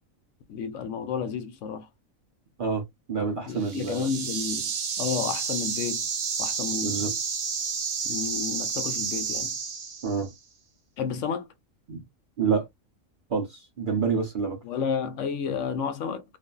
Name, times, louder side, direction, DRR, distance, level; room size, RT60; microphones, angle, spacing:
voice 1, 0.5-1.9 3.5-4.7 5.0-6.1 6.4-7.1 8.0-9.5 11.0-11.5 14.6-16.2, left 6 dB, 70° left, 0.9 m, -31 dB
voice 2, 3.1-4.1 6.8-7.2 10.0-10.3 11.9-12.0 12.4-12.7 13.3-14.6, right 5 dB, 50° right, 0.7 m, -27 dB
sound 1, 3.6-10.3, right 6 dB, 80° right, 1.3 m, -30 dB
2.5 x 2.5 x 2.2 m
omnidirectional pair, 1.4 m